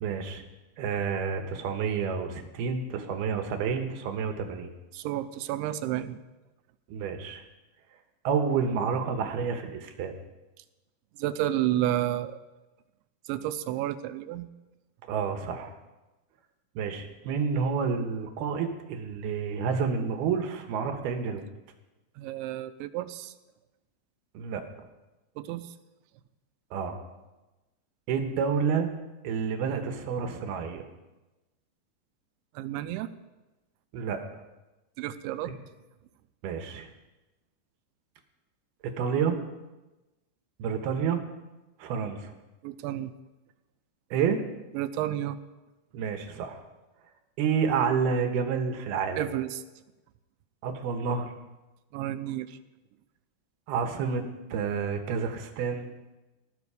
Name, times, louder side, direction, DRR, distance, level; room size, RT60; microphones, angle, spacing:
voice 1, 0.0-0.4 0.8-4.7 6.9-7.4 8.2-10.1 15.1-15.7 16.8-21.4 24.3-24.6 26.7-27.0 28.1-28.9 29.2-30.9 33.9-34.2 35.5-35.6 36.4-36.9 39.0-39.4 40.6-41.2 41.8-42.3 44.1-44.4 45.9-46.6 47.4-49.2 50.6-51.3 53.7-54.2 54.5-55.9, right 6 dB, 70° right, 6 dB, 2.9 m, -29 dB
voice 2, 4.9-6.2 11.2-12.4 13.3-14.5 22.2-23.3 25.4-25.7 32.5-33.1 35.0-35.5 42.6-43.1 44.7-45.4 49.2-49.6 51.9-52.6, right 13 dB, 85° right, 11 dB, 3.0 m, -31 dB
19.5 x 13.0 x 4.9 m, 1.1 s
omnidirectional pair, 5.2 m